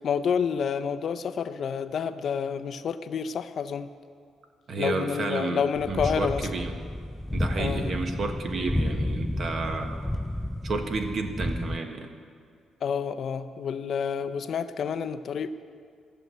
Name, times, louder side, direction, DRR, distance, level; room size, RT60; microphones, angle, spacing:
voice 1, 0.0-3.9 4.8-6.5 7.6-7.9 12.8-15.5, left 7 dB, 60° left, 10 dB, 0.6 m, -29 dB
voice 2, 4.7-6.7 7.3-10.0 10.6-12.1, right 3 dB, 50° right, 5 dB, 1.4 m, -31 dB
sound 1, 5.7-11.8, left 1 dB, 10° left, 0.4 m, -31 dB
14.5 x 6.6 x 9.2 m, 2.3 s
cardioid pair, 90°, 0 cm